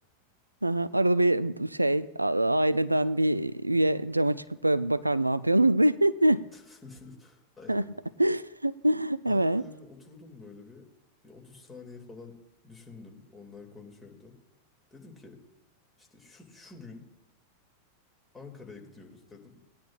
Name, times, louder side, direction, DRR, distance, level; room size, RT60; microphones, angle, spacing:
voice 1, 0.6-6.4 7.7-7.9 8.2-9.6, right 1 dB, 85° right, 15 dB, 0.3 m, -24 dB
voice 2, 6.5-7.9 9.3-10.9 11.2-12.4 12.6-14.3 14.9-15.4 16.0-17.0 18.3-19.6, left 4 dB, 15° left, 1 dB, 2.3 m, -48 dB
18.5 x 10.0 x 2.4 m, 0.93 s
figure-of-eight pair, 90°, 0 cm